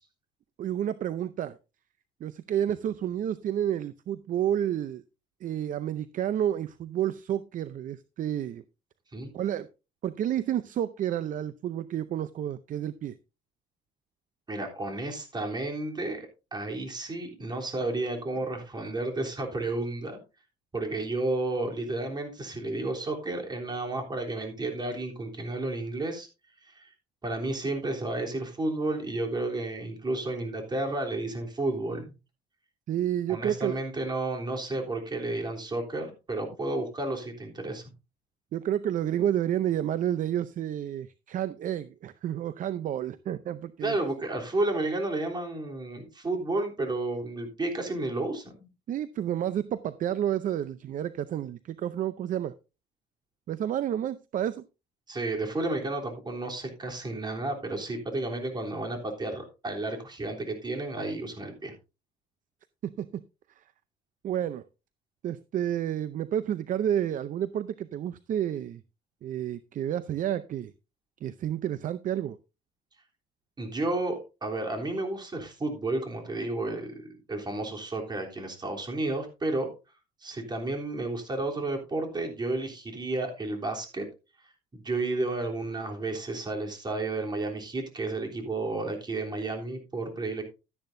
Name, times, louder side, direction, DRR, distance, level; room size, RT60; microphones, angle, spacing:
voice 1, 0.6-1.6 2.2-5.0 5.4-8.6 9.3-9.7 10.0-13.2 32.9-33.8 38.5-44.0 48.9-52.5 53.5-54.6 62.8-63.2 63.6-63.7 64.2-64.6 65.2-68.8 69.2-70.7 71.2-72.4, right 10 dB, 50° right, 15 dB, 0.6 m, -30 dB
voice 2, 14.5-20.2 20.7-26.3 26.7-26.9 27.2-32.1 33.3-37.8 43.8-48.7 55.1-61.7 73.6-79.7 80.2-84.0 84.7-90.4, right 2 dB, 25° right, 2 dB, 3.4 m, -32 dB
12.0 x 10.5 x 2.6 m, 0.28 s
cardioid pair, 110°, 17 cm